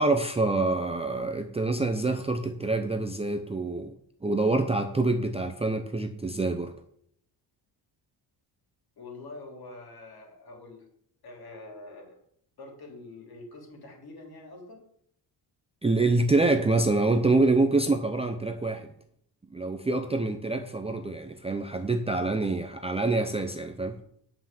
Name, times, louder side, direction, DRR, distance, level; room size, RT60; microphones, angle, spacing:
voice 1, 0.0-3.9 4.2-6.7 15.8-18.9 19.5-24.0, right 2 dB, 15° right, 5 dB, 0.6 m, -26 dB
voice 2, 9.0-10.8 11.2-12.2 12.6-14.8, left 2 dB, 50° left, 1 dB, 3.3 m, -45 dB
9.2 x 5.8 x 7.5 m, 0.68 s
wide cardioid pair, 145°, 46 cm